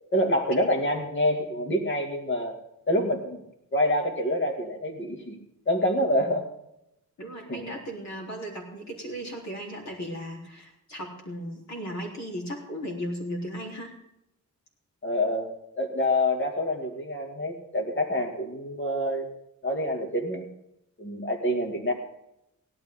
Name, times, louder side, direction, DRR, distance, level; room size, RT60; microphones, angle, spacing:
voice 1, 0.1-2.6 2.9-3.4 3.7-5.4 5.7-6.5 7.5-7.8 15.0-19.3 19.6-20.5 21.0-21.9, left 1 dB, 40° left, 2 dB, 2.5 m, -27 dB
voice 2, 7.2-13.9, equal, 60° left, -1 dB, 4.1 m, -36 dB
17.5 x 12.0 x 3.9 m, 0.82 s
wide cardioid pair, 150°, 31 cm